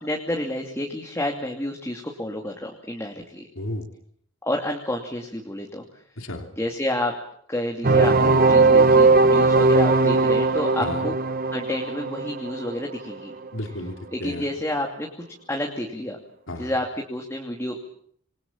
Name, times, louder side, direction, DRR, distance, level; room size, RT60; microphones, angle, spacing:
voice 1, 0.0-3.5 4.4-5.8 6.6-7.1 7.5-11.1 11.5-13.3 14.1-15.1 15.5-16.2 16.5-17.8, left 1 dB, 15° left, 1 dB, 2.6 m, -29 dB
voice 2, 3.5-3.9 6.2-6.5 10.8-11.1 13.5-14.5 16.5-16.7, left 1 dB, 65° left, 4 dB, 3.1 m, -32 dB
sound 1, 7.8-13.5, right 3 dB, 45° right, 1.2 m, -18 dB
27.5 x 21.5 x 7.4 m, 0.64 s
head